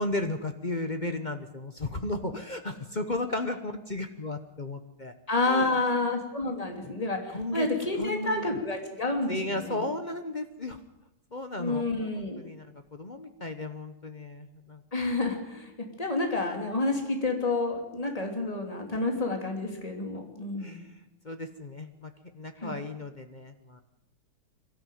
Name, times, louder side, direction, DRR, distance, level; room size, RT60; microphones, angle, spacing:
voice 1, 0.0-5.1 5.4-6.1 6.8-6.9 7.3-7.7 7.9-8.6 9.3-10.8 11.3-11.8 12.1-14.8 20.6-23.8, left 2 dB, 35° left, 8 dB, 0.7 m, -35 dB
voice 2, 5.3-9.8 11.6-12.4 14.9-15.7 16.0-20.8 22.6-22.7, left 2 dB, 15° left, 3 dB, 3.0 m, -29 dB
22.5 x 13.5 x 9.3 m, 0.90 s
omnidirectional pair, 2.4 m